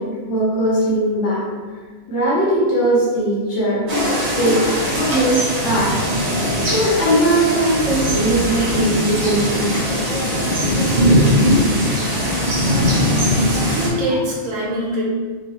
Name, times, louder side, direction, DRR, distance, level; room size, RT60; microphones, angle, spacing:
voice 1, 0.0-1.5 2.1-6.1 6.6-9.7 14.1-14.2, right 1 dB, 65° left, -6 dB, 1.0 m, -20 dB
sound 1, 3.9-13.9, equal, 50° right, 0.5 m, -19 dB
voice 2, 13.5-15.0, equal, 75° right, -4 dB, 1.1 m, -24 dB
3.0 x 2.0 x 2.9 m, 1.5 s
omnidirectional pair, 1.4 m